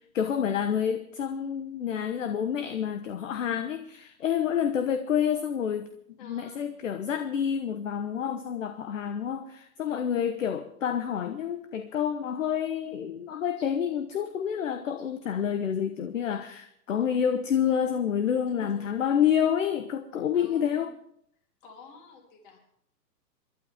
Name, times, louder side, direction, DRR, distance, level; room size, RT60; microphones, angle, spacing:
voice 1, 0.1-5.9 6.3-20.9, left 8 dB, 50° left, 9 dB, 1.1 m, -28 dB
voice 2, 6.2-6.7 18.6-18.8 20.3-20.9 21.6-22.6, left 4 dB, 30° left, 2 dB, 3.7 m, -49 dB
28.0 x 12.0 x 3.6 m, 0.70 s
hypercardioid pair, 175°, 50 cm